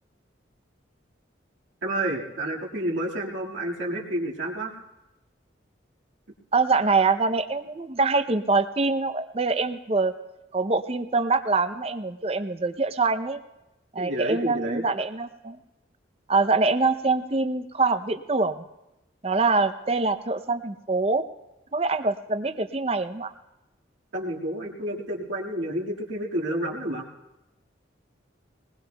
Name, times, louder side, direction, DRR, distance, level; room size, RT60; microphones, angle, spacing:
voice 1, 1.8-4.8 14.0-14.8 24.1-27.1, right 1 dB, 85° right, -2 dB, 1.9 m, -29 dB
voice 2, 6.5-10.1 10.5-13.4 13.9-15.6 16.3-18.6 19.2-21.2 21.7-23.3, right 3 dB, 30° right, 10 dB, 0.6 m, -24 dB
21.5 x 20.0 x 2.3 m, 0.96 s
head